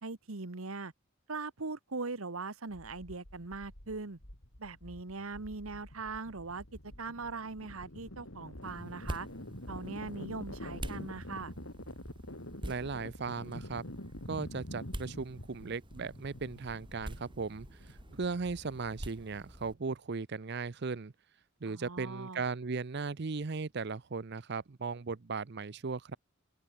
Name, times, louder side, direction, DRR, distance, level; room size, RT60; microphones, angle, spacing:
voice 1, 0.0-0.9 1.3-4.2 4.6-9.3 9.7-11.5 21.7-22.4, right 3 dB, 85° right, 1.4 m, -41 dB
sound 1, 2.7-19.7, left 1 dB, 80° left, 6.1 m, -47 dB
sound 2, 8.6-19.7, right 1 dB, 25° right, 1.6 m, -47 dB
voice 2, 12.6-13.8 14.3-21.1 21.6-26.2, right 4 dB, 55° right, 0.6 m, -37 dB
head